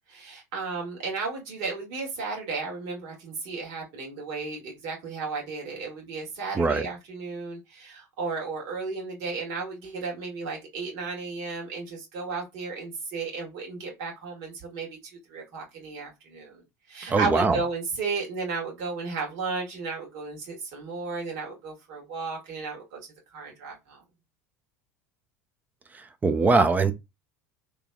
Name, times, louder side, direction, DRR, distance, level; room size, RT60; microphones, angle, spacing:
voice 1, 0.1-23.0 23.3-24.0, right 4 dB, 55° right, 1.9 m, -34 dB
voice 2, 17.1-17.6 26.2-26.9, right 4 dB, 20° right, 0.6 m, -21 dB
3.3 x 3.1 x 2.4 m
figure-of-eight pair, 75°, 8 cm